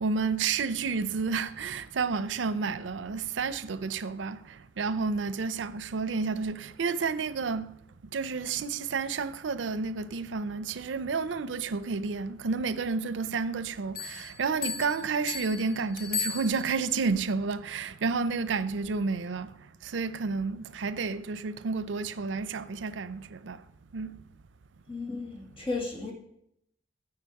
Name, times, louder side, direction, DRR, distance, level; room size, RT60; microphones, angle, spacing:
voice 1, 0.0-4.4 4.8-7.7 8.1-19.5 19.8-23.6 23.9-24.2, right 4 dB, 80° right, 0.5 m, -30 dB
Bell, 13.9-17.0, left 6 dB, 55° left, 0.9 m, -36 dB
voice 2, 24.9-26.1, left 3 dB, 30° left, 1.9 m, -34 dB
13.5 x 4.9 x 4.7 m
head